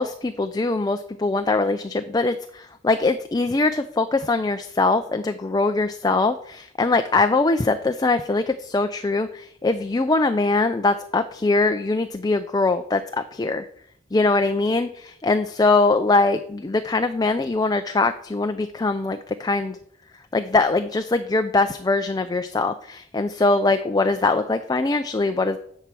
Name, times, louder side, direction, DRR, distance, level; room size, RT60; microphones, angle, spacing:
voice 1, 0.0-13.7 14.1-19.8 20.3-25.6, left 3 dB, 20° left, 8 dB, 0.4 m, -22 dB
10.0 x 4.6 x 7.5 m, 0.66 s
head